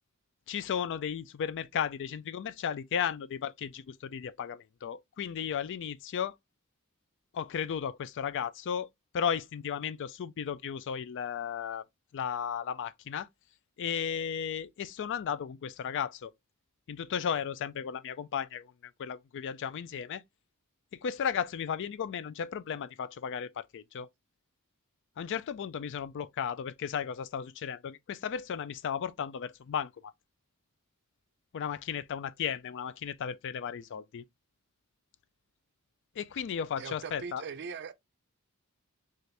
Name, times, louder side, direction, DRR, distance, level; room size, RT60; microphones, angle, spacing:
voice 1, 0.5-6.4 7.3-8.9 9.1-11.8 12.1-13.3 13.8-16.3 16.9-18.7 19.0-20.2 20.9-24.1 25.2-29.9 31.5-34.2 36.2-37.4, left 7 dB, 55° left, 0.4 m, -35 dB
voice 2, 36.8-37.9, right 5 dB, 55° right, 0.5 m, -40 dB
4.2 x 2.5 x 3.1 m
head